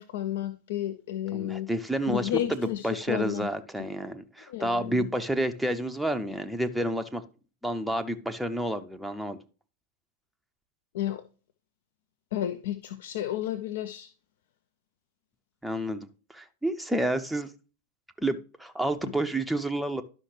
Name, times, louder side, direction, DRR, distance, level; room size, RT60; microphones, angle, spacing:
voice 1, 0.0-1.7 2.1-3.5 4.5-5.1 10.9-11.2 12.3-14.1, left 12 dB, 55° left, 0.5 m, -32 dB
voice 2, 1.3-7.2 7.6-9.4 15.6-17.5 18.2-20.0, right 1 dB, ahead, 0.6 m, -30 dB
11.5 x 5.6 x 3.3 m
figure-of-eight pair, 90°, 0 cm